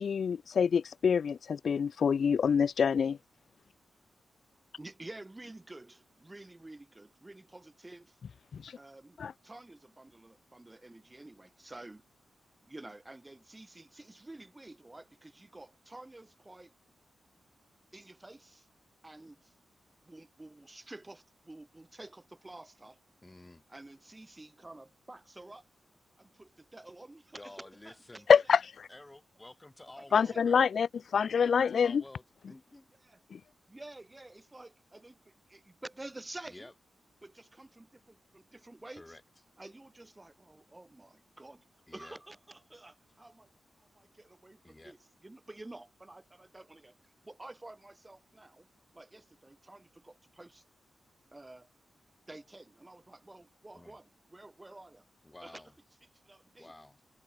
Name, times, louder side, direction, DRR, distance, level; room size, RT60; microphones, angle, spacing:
voice 1, 0.0-3.2 8.5-8.8 9.2-9.3 28.3-28.6 30.1-30.9 31.1-32.0 33.3-33.4, left 6 dB, 70° left, 0.5 m, -26 dB
voice 2, 4.8-8.2 8.8-9.2 9.4-12.0 12.7-16.7 17.9-18.7 19.0-19.5 20.0-23.0 23.7-25.7 26.2-28.2 30.0-30.5 33.0-33.2 33.7-36.7 37.2-39.2 39.6-41.6 41.9-43.5 43.9-48.7 48.9-50.6 51.3-51.7 52.3-55.1 55.4-55.6 56.2-56.7, right 2 dB, 20° right, 2.0 m, -50 dB
voice 3, 23.2-23.6 27.3-28.4 28.9-30.6 31.3-32.9 36.5-36.7 38.9-39.2 41.9-42.2 44.6-44.9 53.7-54.0 55.2-55.7 56.6-57.0, left 2 dB, 20° left, 5.7 m, -52 dB
cardioid pair, 55°, 0 cm